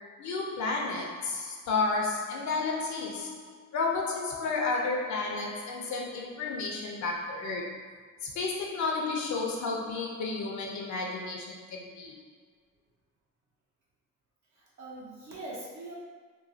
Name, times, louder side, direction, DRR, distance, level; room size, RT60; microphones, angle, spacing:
voice 1, 0.0-7.8 8.2-12.2, left 3 dB, 70° left, 0 dB, 0.6 m, -32 dB
voice 2, 14.6-15.9, right 2 dB, 65° right, -6 dB, 1.1 m, -42 dB
3.0 x 2.2 x 2.7 m, 1.5 s
cardioid pair, 90°, 30 cm